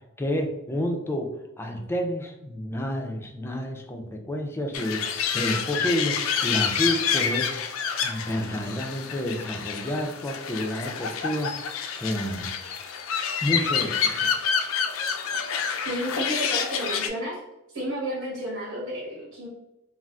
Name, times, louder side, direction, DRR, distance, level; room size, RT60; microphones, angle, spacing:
voice 1, 0.2-1.3 1.6-7.6 8.0-11.7 12.0-12.5 13.4-14.3, equal, 10° left, 2 dB, 0.4 m, -29 dB
sound 1, 4.7-17.1, left 7 dB, 85° left, 0.4 m, -28 dB
voice 2, 15.8-17.4 17.7-19.5, equal, 65° right, -8 dB, 1.2 m, -31 dB
3.6 x 2.4 x 2.3 m, 0.92 s
head